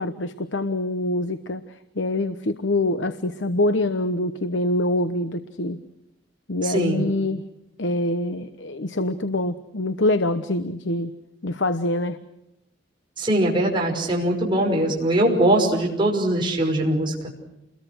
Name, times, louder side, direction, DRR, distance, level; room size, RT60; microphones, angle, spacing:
voice 1, 0.0-1.6 2.0-5.8 6.5-7.4 7.8-11.1 11.4-12.2, left 1 dB, 75° left, 10 dB, 1.1 m, -25 dB
voice 2, 6.6-7.1 13.2-17.1, right 1 dB, 25° right, -1 dB, 5.7 m, -21 dB
29.5 x 22.0 x 6.3 m, 0.89 s
head